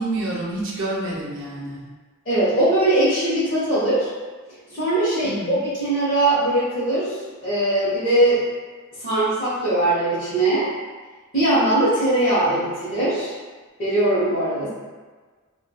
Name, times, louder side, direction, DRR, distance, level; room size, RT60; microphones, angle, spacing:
voice 1, 0.0-1.8 5.2-5.6, right 2 dB, 60° right, -4 dB, 0.7 m, -28 dB
voice 2, 2.2-4.1 4.7-8.4 9.0-10.7 11.3-13.3 13.8-14.7, right 1 dB, 40° left, -13 dB, 1.0 m, -20 dB
3.2 x 2.2 x 2.2 m, 1.4 s
head